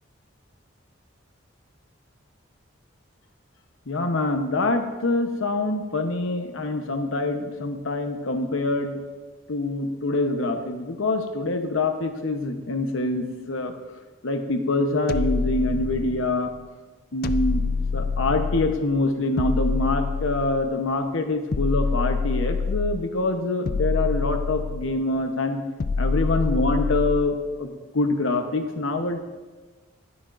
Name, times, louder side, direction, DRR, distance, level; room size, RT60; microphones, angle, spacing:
voice 1, 3.9-8.9 9.5-13.7 14.2-16.5 17.1-17.7 17.9-25.6 26.0-29.2, left 2 dB, 75° left, 6 dB, 0.8 m, -25 dB
sound 1, 15.1-16.4 17.2-18.9 19.4-20.8 21.5-23.1 23.7-25.1 25.8-27.4, left 4 dB, 45° left, 0.3 m, -26 dB
18.5 x 6.3 x 2.5 m, 1.3 s
head